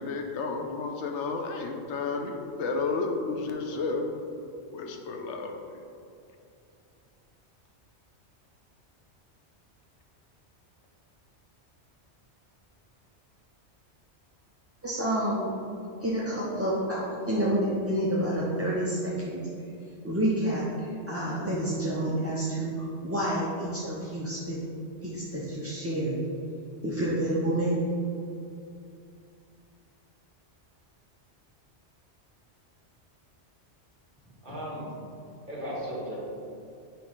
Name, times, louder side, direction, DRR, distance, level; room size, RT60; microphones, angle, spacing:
voice 1, 0.0-4.1 4.7-5.8, left 4 dB, 85° left, 4 dB, 0.9 m, -32 dB
voice 2, 14.8-15.5 16.0-19.4 20.0-24.6 25.0-26.2 26.8-27.7, right 1 dB, 20° right, -7 dB, 0.5 m, -29 dB
voice 3, 34.4-34.9 35.5-36.2, equal, 45° right, -7 dB, 1.6 m, -35 dB
6.0 x 3.1 x 5.1 m, 2.5 s
omnidirectional pair, 1.2 m